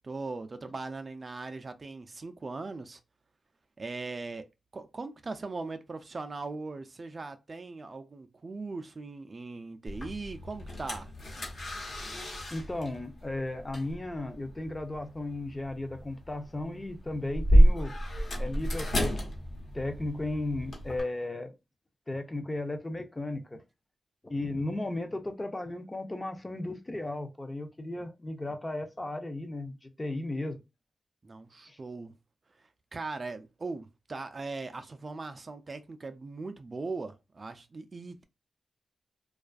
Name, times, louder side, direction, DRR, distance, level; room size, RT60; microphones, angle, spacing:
voice 1, 0.0-3.0 3.8-4.4 4.7-11.1 31.2-32.1 32.6-38.2, right 3 dB, 40° right, 0.3 m, -39 dB
sound 1, 9.9-21.0, equal, 60° left, 0.9 m, -29 dB
voice 2, 12.5-17.9 18.4-19.1 19.7-21.5 22.1-23.6 24.2-30.6 31.7-31.8, left 2 dB, 25° left, 0.5 m, -35 dB
2.4 x 2.3 x 2.3 m
cardioid pair, 80°, 0 cm